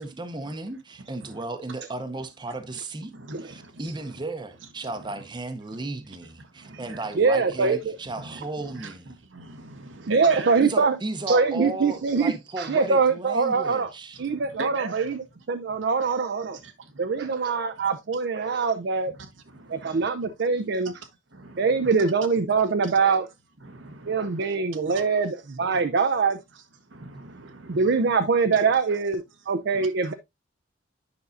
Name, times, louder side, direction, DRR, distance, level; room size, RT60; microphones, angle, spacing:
voice 1, 0.0-3.1 3.4-9.1 10.6-14.2, right 2 dB, 25° right, 0.7 m, -35 dB
voice 2, 3.1-4.2 4.8-5.2 5.7-5.8 6.4-7.1 8.2-10.7 14.2-15.2 16.8-17.3 19.1-20.3 20.8-20.9 21.3-21.9 23.6-24.4 24.8-25.1 25.7-25.8 26.9-28.1 29.7-29.9, right 3 dB, 80° right, 1.1 m, -41 dB
voice 3, 7.1-8.0 10.0-11.0 11.3-13.9 14.2-15.2 15.5-16.6 17.0-19.1 19.7-20.9 21.6-23.3 24.1-26.4 27.7-30.1, right 4 dB, 60° right, 0.5 m, -23 dB
9.5 x 5.4 x 2.5 m
head